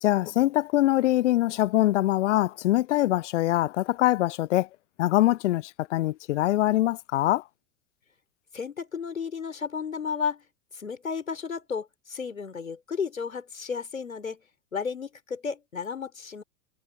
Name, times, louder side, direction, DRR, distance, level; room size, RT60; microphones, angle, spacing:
voice 1, 0.0-4.7 5.0-7.4, left 15 dB, 60° left, 0.6 m, -23 dB
voice 2, 8.5-10.4 10.7-14.4 14.7-16.4, left 6 dB, 80° left, 4.3 m, -33 dB
figure-of-eight pair, 90°, 40 cm